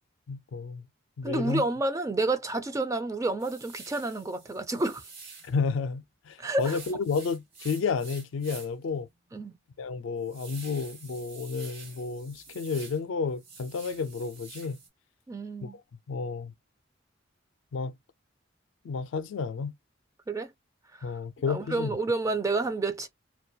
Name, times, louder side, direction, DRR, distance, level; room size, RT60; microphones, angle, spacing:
voice 1, 0.3-0.9 1.2-1.6 5.4-9.1 9.8-14.8 15.6-15.8 16.1-16.5 17.7-17.9 18.8-19.7 21.0-21.9, left 5 dB, 70° left, 0.4 m, -31 dB
voice 2, 1.2-5.1 6.4-6.8 9.3-9.5 15.3-15.8 20.3-20.5 20.9-21.2 21.5-23.1, right 2 dB, 15° right, 0.4 m, -29 dB
sound 1, 3.4-5.6 6.6-8.8 9.3-9.4 9.8-13.0 13.3-14.9, right 5 dB, 55° right, 1.1 m, -48 dB
2.2 x 2.2 x 2.6 m
head